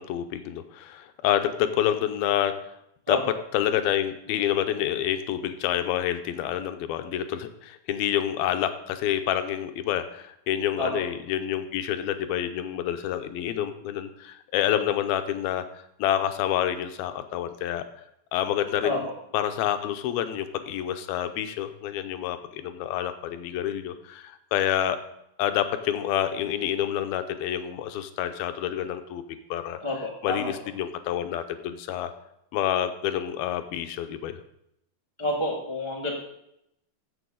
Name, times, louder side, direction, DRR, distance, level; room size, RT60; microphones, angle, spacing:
voice 1, 0.0-2.5 3.1-3.2 3.5-17.9 18.3-19.1 19.3-25.0 25.4-29.2 29.5-29.8 30.2-32.1 32.5-34.4, left 11 dB, 85° left, 9 dB, 2.6 m, -28 dB
voice 2, 29.8-30.5 35.2-36.2, left 1 dB, 40° right, -3 dB, 0.4 m, -29 dB
14.5 x 7.0 x 3.8 m, 0.78 s
omnidirectional pair, 4.3 m